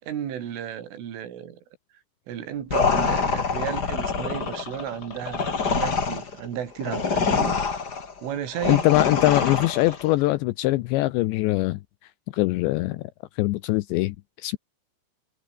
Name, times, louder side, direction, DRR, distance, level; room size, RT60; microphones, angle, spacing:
voice 1, 0.0-1.6 2.3-7.6 8.2-8.9, right 9 dB, 75° right, 5.5 m, -33 dB
sound 1, 2.7-10.1, left 5 dB, 40° left, 1.5 m, -26 dB
voice 2, 8.7-11.8 12.3-13.0 13.4-14.2 14.4-14.6, left 18 dB, 85° left, 2.6 m, -22 dB
omnidirectional pair, 5.7 m